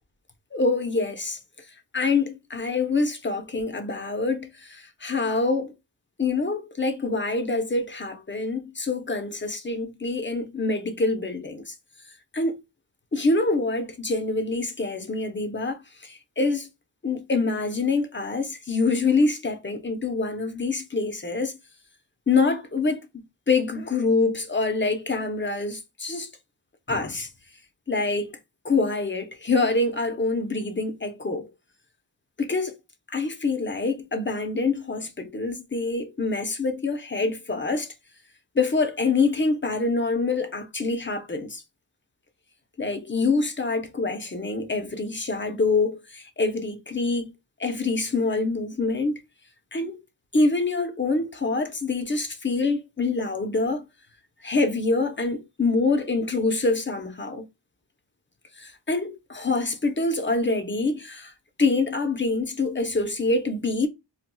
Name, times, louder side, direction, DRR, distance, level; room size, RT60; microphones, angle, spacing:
voice 1, 0.5-1.4 1.9-5.7 6.2-11.7 12.3-12.5 13.1-16.7 17.0-21.6 22.3-26.3 26.9-27.3 27.9-28.3 28.6-31.5 32.4-32.7 33.1-37.9 38.6-41.6 42.8-47.3 47.6-49.2 49.7-49.9 50.3-53.8 54.4-57.5 58.6-61.3 61.6-63.9, left 3 dB, 25° left, 0.7 m, -25 dB
4.2 x 2.3 x 2.2 m
wide cardioid pair, 45°, 46 cm